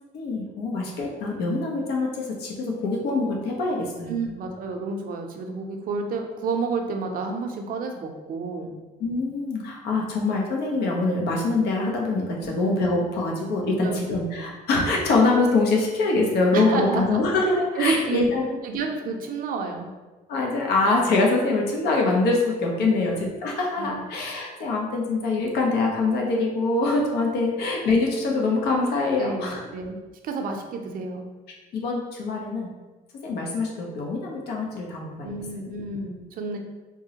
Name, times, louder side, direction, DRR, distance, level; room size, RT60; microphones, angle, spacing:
voice 1, 0.1-4.1 9.0-18.6 20.3-29.6 31.7-32.7 33.2-35.3, left 3 dB, 75° left, -1 dB, 0.7 m, -24 dB
voice 2, 4.1-8.7 12.4-12.5 13.8-14.0 16.5-17.2 17.8-18.3 18.6-19.9 22.8-23.1 23.8-24.0 29.2-31.3 35.2-36.6, right 4 dB, 55° right, 3 dB, 0.5 m, -30 dB
3.6 x 2.0 x 2.8 m, 1.2 s
cardioid pair, 110°, 17 cm